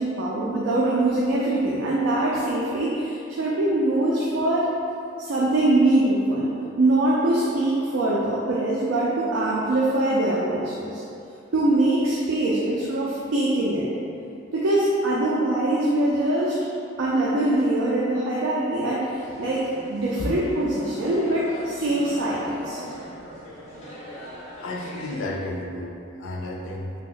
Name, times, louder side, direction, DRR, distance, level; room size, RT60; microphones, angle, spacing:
voice 1, 0.0-4.7 5.2-6.5 6.8-11.0 11.5-13.9 14.5-16.6 17.0-22.8, right 1 dB, 70° right, -5 dB, 0.4 m, -23 dB
sound 1, 19.1-25.3, equal, 35° left, 0.7 m, -40 dB
voice 2, 24.6-26.9, left 1 dB, 80° left, -1 dB, 0.4 m, -32 dB
2.9 x 2.1 x 3.8 m, 2.6 s
head